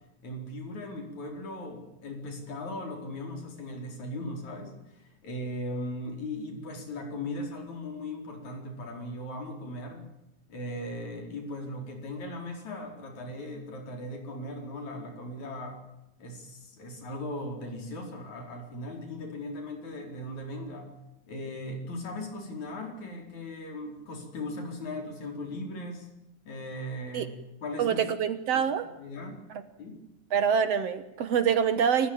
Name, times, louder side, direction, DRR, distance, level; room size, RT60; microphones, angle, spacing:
voice 1, 0.2-10.1 10.5-15.8 16.2-20.9 21.3-26.1 26.5-27.4 27.6-28.1 28.5-28.6 29.0-29.5 29.8-30.0, left 1 dB, 65° left, 4 dB, 5.8 m, -38 dB
voice 2, 27.8-28.9 30.3-32.1, right 7 dB, 60° right, 12 dB, 2.1 m, -25 dB
29.0 x 15.0 x 8.8 m, 0.90 s
omnidirectional pair, 3.5 m